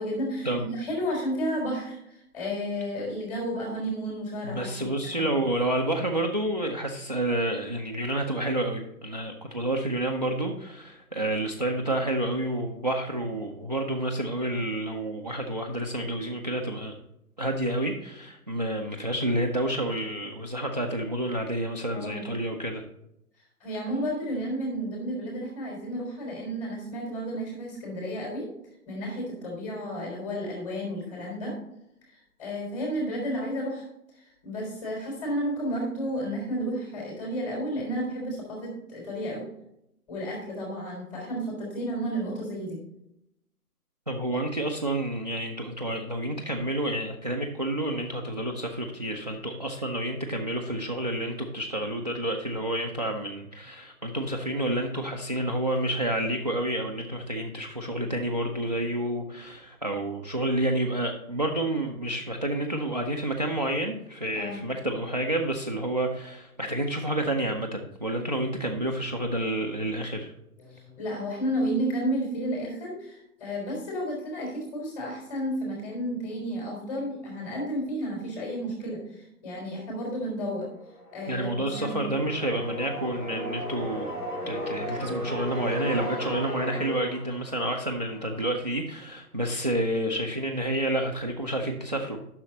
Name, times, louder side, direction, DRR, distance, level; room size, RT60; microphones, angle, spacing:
voice 1, 0.0-2.0 2.3-5.3 21.9-22.3 23.6-28.5 28.9-31.5 32.4-33.8 34.2-39.5 40.1-42.8 64.3-64.6 70.6-80.7 81.1-82.0, equal, 25° left, -1 dB, 3.7 m, -32 dB
voice 2, 4.4-16.9 17.4-22.8 44.1-70.3 81.3-84.1 84.5-92.2, right 1 dB, 30° right, 3 dB, 0.4 m, -29 dB
sound 1, 80.8-88.6, equal, 85° left, 3.5 m, -36 dB
9.9 x 6.3 x 3.9 m, 0.82 s
figure-of-eight pair, 135°, 45 cm